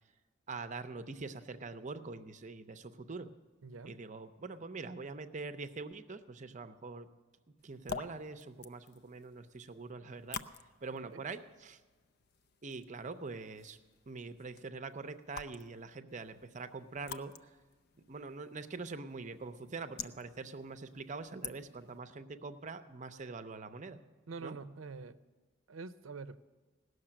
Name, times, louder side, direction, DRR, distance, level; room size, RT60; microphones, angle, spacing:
voice 1, 0.5-3.3 3.8-7.1 7.6-10.4 10.8-11.8 12.6-13.8 14.1-17.3 18.1-24.0 24.4-24.6, right 4 dB, 40° right, 11 dB, 0.6 m, -44 dB
voice 2, 3.6-4.0 11.1-11.2 24.3-25.2 25.7-26.4, right 4 dB, 90° right, 13 dB, 0.6 m, -45 dB
sound 1, 7.6-22.0, left 6 dB, 55° left, 0.5 m, -49 dB
17.5 x 6.6 x 8.8 m, 1.3 s
head